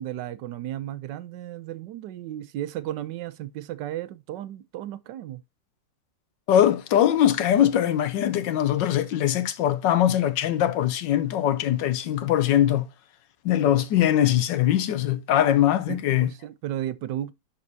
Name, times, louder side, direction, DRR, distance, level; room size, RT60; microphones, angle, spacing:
voice 1, 0.0-5.4 15.9-17.3, right 12 dB, 75° right, 1.2 m, -34 dB
voice 2, 6.5-12.9 13.4-16.3, left 11 dB, 75° left, 1.3 m, -22 dB
11.5 x 4.2 x 2.7 m
omnidirectional pair, 2.0 m